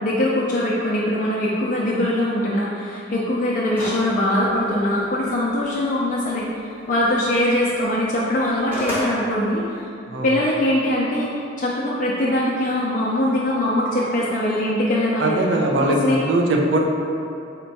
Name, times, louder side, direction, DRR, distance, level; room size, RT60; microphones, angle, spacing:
voice 1, 0.0-6.5 6.9-9.9 10.2-15.4 15.8-16.2, left 1 dB, 45° left, -6 dB, 0.4 m, -22 dB
sound 1, 3.7-4.1 4.5-4.6 8.3-9.1, left 1 dB, 10° right, 1.1 m, -27 dB
voice 2, 15.2-16.8, right 1 dB, 75° right, 0 dB, 0.5 m, -20 dB
4.4 x 2.2 x 4.0 m, 2.7 s
head